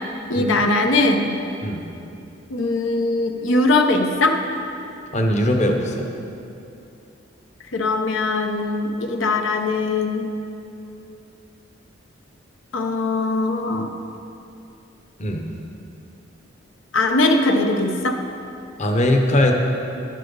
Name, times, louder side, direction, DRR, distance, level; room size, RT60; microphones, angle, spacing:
voice 1, 0.3-1.4 2.5-4.4 7.7-10.3 12.7-13.9 16.9-18.2, left 2 dB, 85° left, 4 dB, 0.8 m, -20 dB
voice 2, 5.1-6.1 15.2-15.4 18.8-19.5, left 1 dB, 35° left, 3 dB, 0.9 m, -20 dB
12.0 x 7.6 x 5.4 m, 2.7 s
head